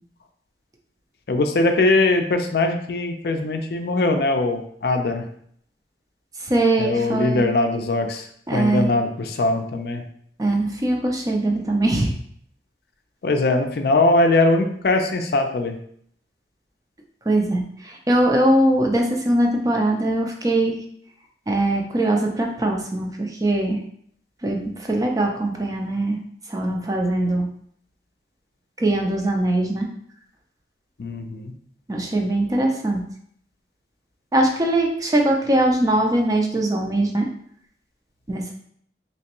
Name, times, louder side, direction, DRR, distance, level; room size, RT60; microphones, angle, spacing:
voice 1, 1.3-5.2 6.8-8.3 8.5-10.0 13.2-15.8 31.0-31.5, left 2 dB, 60° left, 5 dB, 0.4 m, -21 dB
voice 2, 6.4-7.5 8.5-8.9 10.4-12.2 17.3-20.8 21.5-23.8 24.4-26.2 26.5-27.5 28.8-29.9 31.9-33.0 34.3-37.3 38.3-38.5, right 1 dB, 20° right, 1 dB, 0.4 m, -21 dB
3.3 x 3.0 x 3.0 m, 0.65 s
head